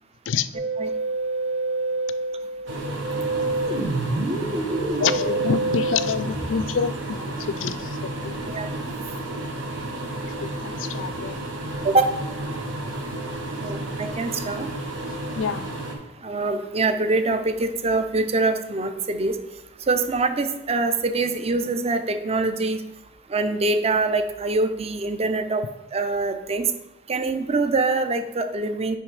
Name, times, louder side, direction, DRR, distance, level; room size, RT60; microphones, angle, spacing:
Musical instrument, 0.5-6.6, right 2 dB, 60° right, 2.5 m, -27 dB
sound 1, 2.7-15.9, right 1 dB, 90° right, 1.3 m, -32 dB
voice 1, 5.0-8.4 10.2-11.4 13.1-13.2 15.4-15.7, left 6 dB, 85° left, 14 dB, 0.4 m, -27 dB
voice 2, 13.6-14.7 16.2-19.4 19.9-22.8 23.3-25.6 25.9-26.7 27.1-29.0, right 3 dB, 35° right, 8 dB, 0.6 m, -24 dB
9.5 x 3.3 x 4.9 m, 1.0 s
head